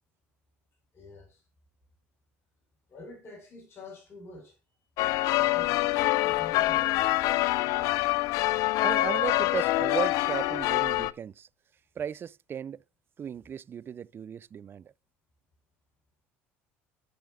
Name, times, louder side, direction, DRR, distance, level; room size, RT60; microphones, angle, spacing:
voice 1, 0.9-1.4 2.9-4.6 5.3-5.9 6.2-7.2 7.8-7.9, left 3 dB, 45° left, 5.3 m, -47 dB
sound 1, 5.0-11.1, left 17 dB, 65° left, 0.4 m, -25 dB
voice 2, 8.8-11.5 12.0-12.8 13.2-14.8, right 8 dB, 35° right, 0.3 m, -35 dB
12.0 x 6.2 x 2.4 m
hypercardioid pair, 70°, 6 cm